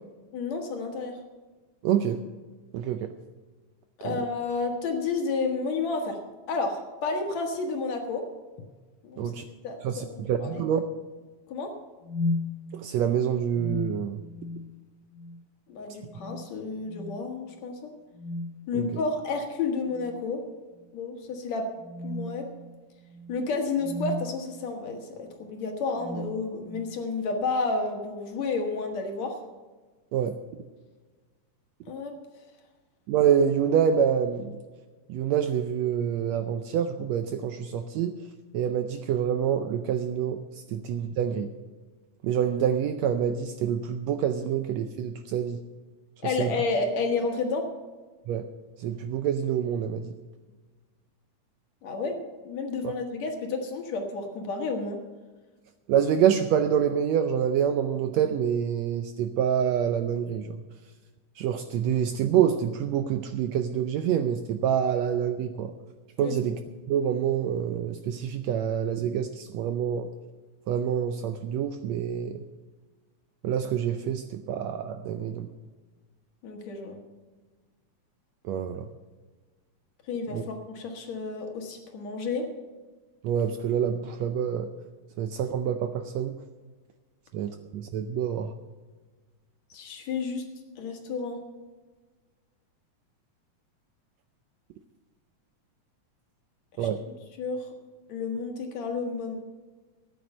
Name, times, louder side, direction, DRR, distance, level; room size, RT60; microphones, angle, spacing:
voice 1, 0.3-1.2 4.0-6.2 6.5-8.3 9.0-9.2 9.6-10.6 11.5-11.7 15.7-17.9 18.7-20.4 20.9-21.7 22.0-22.5 23.3-29.4 31.9-32.2 46.2-47.7 51.8-52.2 52.4-55.0 66.2-66.3 76.4-77.0 80.1-80.4 80.7-82.5 89.7-90.4 90.8-91.4 96.8-96.9 97.4-97.7 98.1-99.4, left 4 dB, 60° left, 3 dB, 2.8 m, -31 dB
voice 2, 1.8-2.2 2.7-3.1 4.0-4.2 9.2-9.4 9.8-10.8 12.7-14.2 18.7-18.9 30.1-30.3 33.1-34.6 35.1-38.2 38.5-41.5 42.2-45.6 46.2-46.5 48.3-48.4 48.8-50.1 52.8-52.9 55.9-60.6 61.4-65.7 66.2-66.6 66.9-70.1 70.7-72.4 73.4-75.5 78.4-78.9 80.3-80.4 83.2-84.7 85.2-86.3 87.3-88.5 96.8-97.0, right 8 dB, 75° right, 8 dB, 1.6 m, -26 dB
sound 1, 8.6-8.8 9.2-9.4 9.9-10.4 12.0-12.6 13.5-14.8 15.1-15.4 16.1-16.5 16.9-17.2 18.1-18.7 19.9-20.3 20.8-20.9 21.8-24.4 25.3-25.5 26.0-27.0, left 2 dB, 90° left, 2.4 m, -36 dB
13.5 x 9.4 x 6.6 m, 1.3 s
omnidirectional pair, 3.6 m